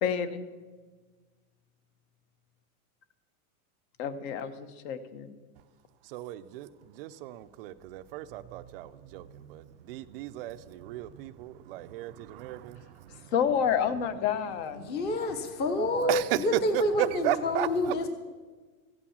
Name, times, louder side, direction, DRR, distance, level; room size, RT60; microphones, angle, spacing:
voice 1, 0.0-0.5 4.0-5.3 13.1-14.8 15.8-16.2, left 8 dB, 45° left, 1.1 m, -29 dB
voice 2, 6.1-6.7 7.0-9.2 9.5-9.6 9.9-12.8 16.1-16.2 17.2-17.7, right 15 dB, 40° right, 0.5 m, -36 dB
voice 3, 14.7-18.1, left 1 dB, 20° left, 1.0 m, -28 dB
15.0 x 8.7 x 7.3 m
supercardioid pair, 155°, 45 cm